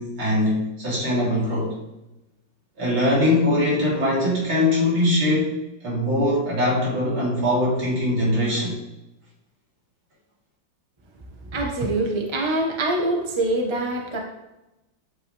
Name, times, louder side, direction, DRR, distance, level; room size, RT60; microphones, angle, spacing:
voice 1, 0.0-1.7 2.8-5.5 5.8-8.8, left 1 dB, 75° right, -7 dB, 4.3 m, -22 dB
voice 2, 11.4-14.2, right 2 dB, 15° right, 0 dB, 1.2 m, -24 dB
10.5 x 8.3 x 3.5 m, 0.96 s
omnidirectional pair, 2.1 m